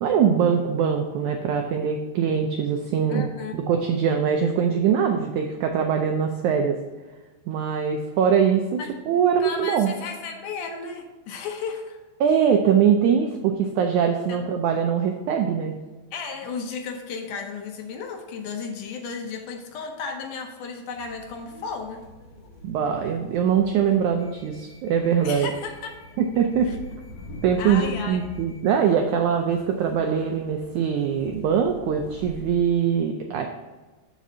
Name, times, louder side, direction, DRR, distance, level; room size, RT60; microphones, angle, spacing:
voice 1, 0.0-3.3 3.5-6.8 7.5-8.8 9.1-9.9 12.2-15.7 22.6-25.5 26.2-26.7 27.4-33.5, right 7 dB, 85° right, 4 dB, 1.7 m, -22 dB
voice 2, 3.1-3.6 8.8-8.9 9.4-12.0 14.3-14.5 16.1-22.0 25.2-25.9 26.6-26.8 27.6-28.2, left 5 dB, 75° left, 3 dB, 2.1 m, -34 dB
sound 1, 21.0-32.6, left 1 dB, 50° left, 2.5 m, -44 dB
13.5 x 5.1 x 2.7 m, 1.2 s
omnidirectional pair, 4.1 m